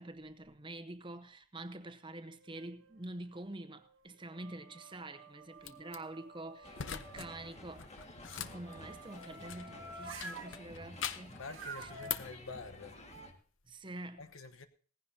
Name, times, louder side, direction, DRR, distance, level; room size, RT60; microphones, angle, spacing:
voice 1, 0.0-7.9 8.3-11.9 13.7-14.3, right 2 dB, 25° right, 0.7 m, -47 dB
sound 1, 2.3-3.0 3.6-7.5 8.4-10.6 11.5-12.1, right 3 dB, 75° right, 1.4 m, -50 dB
sound 2, 5.6-6.0 6.7-7.3 7.6-9.8 10.2-11.4 11.8-12.4, left 8 dB, 65° left, 0.7 m, -42 dB
sound 3, 6.6-13.3, left 1 dB, 30° left, 1.9 m, -52 dB
voice 2, 11.3-13.0 14.2-14.7, left 4 dB, 85° left, 1.1 m, -47 dB
18.0 x 15.5 x 2.8 m
head